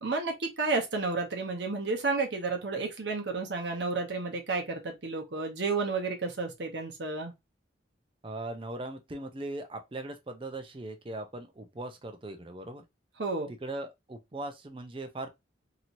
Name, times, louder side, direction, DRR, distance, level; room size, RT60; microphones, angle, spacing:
voice 1, 0.0-7.3 13.2-13.5, right 3 dB, 60° right, 0.8 m, -31 dB
voice 2, 8.2-12.8 13.6-15.3, right 2 dB, 25° right, 0.5 m, -39 dB
2.9 x 2.9 x 2.5 m
head